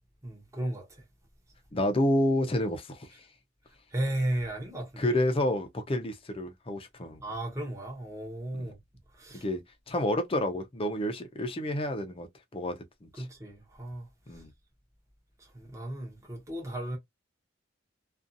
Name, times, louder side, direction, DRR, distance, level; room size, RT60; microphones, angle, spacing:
voice 1, 0.2-1.0 3.9-5.2 5.9-6.0 7.2-8.8 9.1-9.4 13.2-14.4 15.4-17.0, right 1 dB, 15° right, 0.8 m, -35 dB
voice 2, 1.7-3.3 5.0-7.2 8.6-8.7 9.4-13.3 14.3-14.5, left 1 dB, 30° left, 0.5 m, -30 dB
2.6 x 2.3 x 2.5 m
head